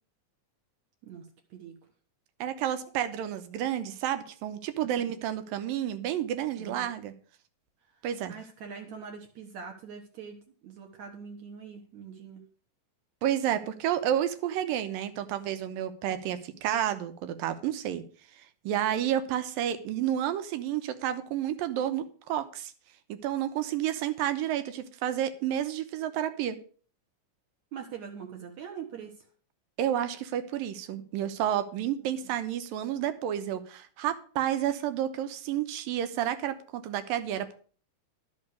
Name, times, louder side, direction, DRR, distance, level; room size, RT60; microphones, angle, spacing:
voice 1, 1.0-1.8 4.8-5.1 6.6-6.9 7.9-8.0 8.3-10.4 10.6-12.4 27.7-29.3 32.0-32.3, right 6 dB, 65° right, 2 dB, 2.3 m, -43 dB
voice 2, 2.4-7.1 8.0-8.4 13.2-18.0 18.6-22.7 23.1-26.6 29.8-37.6, right 11 dB, 90° right, 10 dB, 2.7 m, -30 dB
12.0 x 5.8 x 6.5 m, 0.43 s
omnidirectional pair, 3.9 m